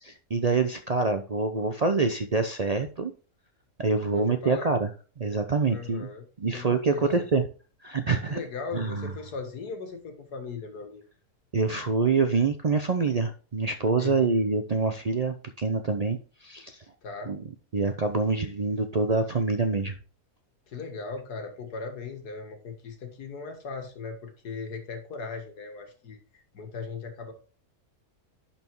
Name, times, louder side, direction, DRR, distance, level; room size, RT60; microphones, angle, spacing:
voice 1, 0.0-3.1 3.8-4.9 5.2-6.1 6.4-7.4 7.8-8.4 8.7-9.1 11.5-16.8 17.3-17.4 17.7-19.9, right 4 dB, 60° right, 7 dB, 0.4 m, -26 dB
voice 2, 4.1-4.7 5.7-6.2 6.5-6.7 6.9-7.3 8.3-11.0 14.0-14.4 17.0-17.3 20.7-27.3, left 4 dB, 90° left, 5 dB, 2.1 m, -38 dB
11.0 x 4.3 x 4.6 m, 0.37 s
omnidirectional pair, 1.6 m